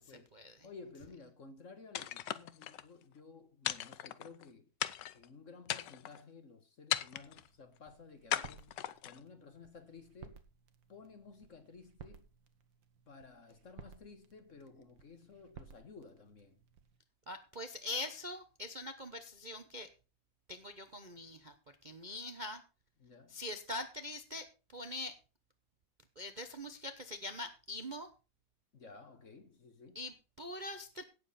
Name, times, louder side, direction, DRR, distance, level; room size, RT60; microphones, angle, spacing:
voice 1, 0.6-4.7 5.1-10.4 10.9-12.2 13.1-16.6 23.0-23.4 28.7-30.1, left 4 dB, 45° left, 1.5 m, -55 dB
sound 1, 2.0-2.8 3.7-4.5 4.8-5.3 5.7-6.2 6.9-7.5 8.3-9.2, left 12 dB, 75° left, 1.3 m, -37 dB
sound 2, 7.2-17.0, right 7 dB, 80° right, 1.9 m, -58 dB
voice 2, 17.3-19.9 20.5-21.5 21.8-22.6 23.3-24.5 24.7-25.2 26.2-28.1 29.9-31.0, left 2 dB, 35° right, 0.8 m, -43 dB
17.0 x 7.3 x 4.2 m
omnidirectional pair, 2.0 m